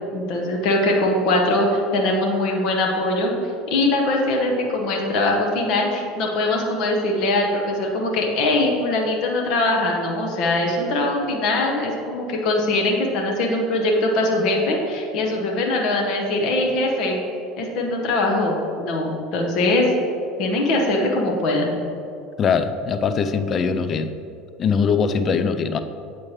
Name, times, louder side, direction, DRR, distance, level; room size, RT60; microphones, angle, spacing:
voice 1, 0.1-1.7 1.9-3.3 3.7-17.2 17.6-19.9 20.4-21.7, left 2 dB, 50° left, 1 dB, 0.9 m, -22 dB
voice 2, 22.4-24.1 24.6-25.8, left 6 dB, 35° left, 10 dB, 0.4 m, -21 dB
8.4 x 4.4 x 3.1 m, 2.5 s
figure-of-eight pair, 70°, 0 cm